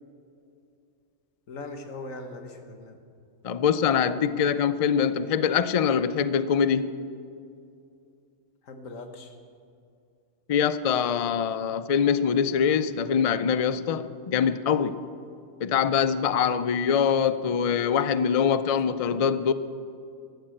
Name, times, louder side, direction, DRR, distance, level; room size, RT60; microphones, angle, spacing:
voice 1, 1.5-3.0 8.6-9.3 18.9-19.3, left 2 dB, 85° left, 6 dB, 1.7 m, -40 dB
voice 2, 3.4-7.1 10.5-15.0 15.6-19.5, left 7 dB, 60° left, 14 dB, 0.3 m, -24 dB
13.5 x 12.0 x 7.7 m, 2.5 s
omnidirectional pair, 1.3 m